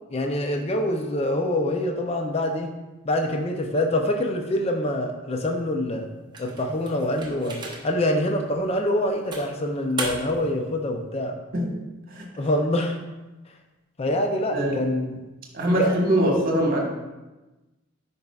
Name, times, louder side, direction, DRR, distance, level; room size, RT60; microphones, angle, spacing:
voice 1, 0.1-2.7 3.0-6.1 6.4-11.4 12.4-13.0 14.0-15.1 15.8-15.9, left 1 dB, 30° left, 4 dB, 0.5 m, -25 dB
sound 1, 6.3-8.1 8.6-8.7 9.3-10.5, right 2 dB, 20° right, 0.8 m, -35 dB
voice 2, 14.5-14.8 15.5-16.8, right 1 dB, 45° right, -1 dB, 1.4 m, -22 dB
9.0 x 5.4 x 2.3 m, 1.1 s
head